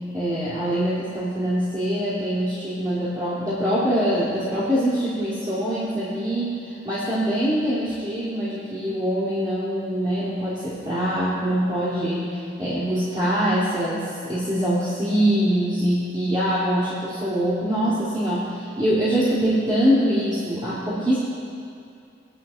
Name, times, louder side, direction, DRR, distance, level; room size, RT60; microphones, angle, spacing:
voice 1, 0.1-21.2, equal, 25° right, -12 dB, 2.9 m, -24 dB
21.0 x 11.5 x 2.5 m, 2.6 s
head